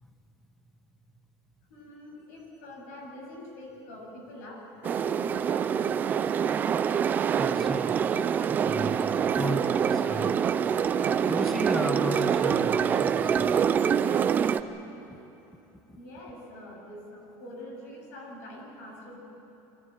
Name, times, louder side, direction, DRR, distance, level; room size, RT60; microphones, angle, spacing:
voice 1, 1.7-6.0 15.9-19.2, left 1 dB, 90° left, -1 dB, 7.8 m, -44 dB
sound 1, 4.8-14.6, right 7 dB, 20° right, 0.5 m, -25 dB
voice 2, 7.4-7.9 8.6-10.3 11.3-13.7 15.1-15.2, equal, 5° left, 5 dB, 1.0 m, -34 dB
25.5 x 16.0 x 9.3 m, 3.0 s
cardioid pair, 170°, 9 cm